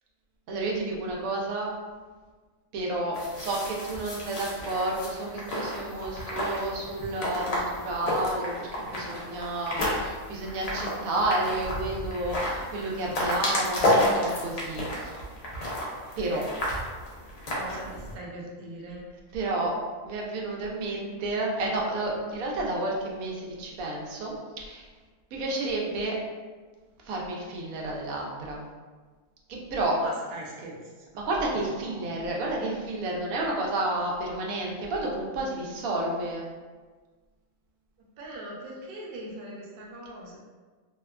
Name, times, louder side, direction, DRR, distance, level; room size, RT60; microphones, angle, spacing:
voice 1, 0.5-1.8 2.7-15.2 16.2-16.4 19.3-19.8 20.0-24.9 25.3-26.2 27.0-28.6 29.5-30.0 31.1-36.4, right 2 dB, 90° right, -2 dB, 1.0 m, -31 dB
sound 1, 3.1-18.1, left 1 dB, 80° left, 0.3 m, -31 dB
voice 2, 17.5-19.0 30.0-31.1 31.6-32.0 38.2-40.4, right 1 dB, 60° right, -3 dB, 0.5 m, -41 dB
2.7 x 2.1 x 2.3 m, 1.4 s
omnidirectional pair, 1.4 m